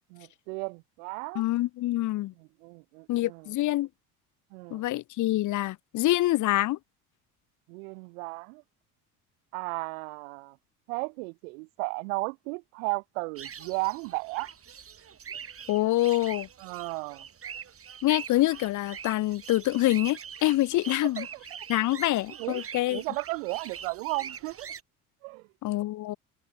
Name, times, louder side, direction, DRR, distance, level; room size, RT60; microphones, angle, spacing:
voice 1, 0.1-1.4 2.4-3.5 4.5-4.9 7.7-8.6 9.5-10.6 10.9-14.5 16.6-17.3 20.7-20.8 21.2-21.4 22.4-22.6 22.9-24.7 25.2-25.4, right 30 dB, 60° right, 1.0 m, -35 dB
voice 2, 1.3-2.3 3.1-3.9 4.7-6.8 15.7-16.5 18.0-21.3 21.7-23.0 25.6-26.2, left 16 dB, 40° left, 0.8 m, -26 dB
sound 1, 13.4-24.8, right 7 dB, 30° right, 2.4 m, -43 dB
figure-of-eight pair, 60°, 45 cm